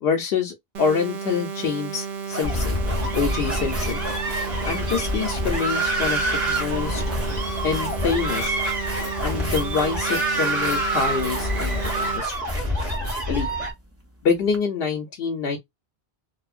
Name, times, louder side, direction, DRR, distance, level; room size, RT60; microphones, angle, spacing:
voice 1, 0.0-2.7 3.1-4.0 4.6-7.0 7.6-8.6 9.2-12.4 13.3-13.5 14.2-15.6, left 6 dB, 75° left, 0.8 m, -26 dB
sound 1, 0.7-12.2, right 6 dB, 60° right, 0.8 m, -33 dB
sound 2, 1.6-1.8 2.2-14.6, right 1 dB, 15° right, 0.6 m, -36 dB
sound 3, 2.4-13.7, right 1 dB, 40° right, 1.3 m, -26 dB
3.0 x 2.1 x 2.3 m
omnidirectional pair, 1.0 m